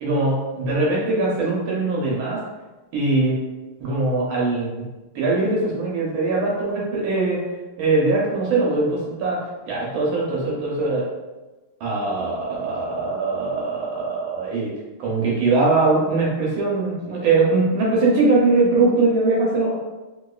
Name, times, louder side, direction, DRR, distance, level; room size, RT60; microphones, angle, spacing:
voice 1, 0.0-2.4 2.9-3.4 3.8-4.9 5.1-7.4 7.8-11.0 11.8-14.7 15.0-19.8, right 3 dB, 80° right, -4 dB, 1.5 m, -21 dB
3.4 x 2.8 x 2.3 m, 1.1 s
omnidirectional pair, 2.2 m